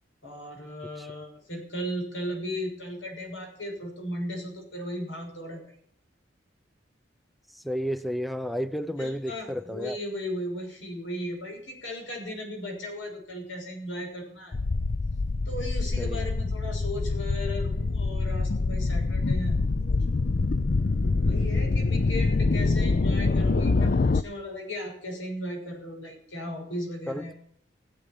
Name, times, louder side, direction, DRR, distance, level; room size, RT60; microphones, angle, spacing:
voice 1, 0.2-5.7 9.0-14.6 15.4-19.6 19.9-20.0 21.2-27.4, left 1 dB, 85° left, 6.6 m, -36 dB
voice 2, 7.5-10.0 16.0-16.3 27.1-27.2, equal, ahead, 0.5 m, -32 dB
sound 1, 14.5-24.2, left 3 dB, 50° left, 0.5 m, -25 dB
17.0 x 8.1 x 8.4 m
head